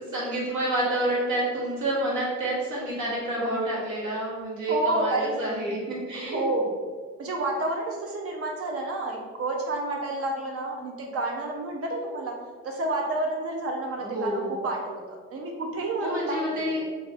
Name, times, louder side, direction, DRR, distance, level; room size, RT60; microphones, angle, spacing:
voice 1, 0.0-6.4 14.0-14.5 16.0-16.9, right 1 dB, 75° right, -6 dB, 1.2 m, -28 dB
voice 2, 4.7-5.3 6.3-6.7 7.2-12.3 12.6-16.4 16.6-16.7, right 2 dB, 50° right, 0 dB, 0.6 m, -29 dB
2.6 x 2.5 x 3.3 m, 1.5 s
cardioid pair, 90°, 30 cm